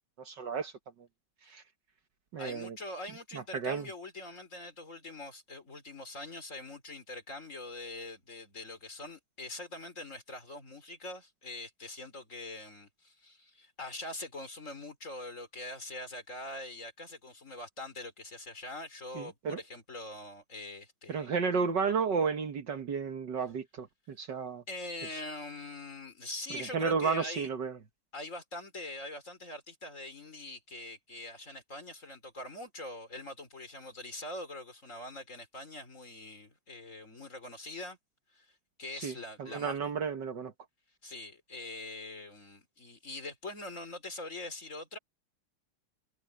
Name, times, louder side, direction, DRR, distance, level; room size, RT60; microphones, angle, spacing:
voice 1, 0.2-0.7 1.5-1.6 2.3-2.8 3.3-3.9 19.2-19.6 21.1-24.6 25.1-25.2 26.7-27.8 38.9-40.5, right 5 dB, 60° right, 1.9 m, -32 dB
voice 2, 2.4-21.3 24.7-27.5 28.1-38.0 38.3-38.5 38.8-39.8 41.0-45.0, left 2 dB, 35° left, 4.2 m, -43 dB
omnidirectional pair, 2.3 m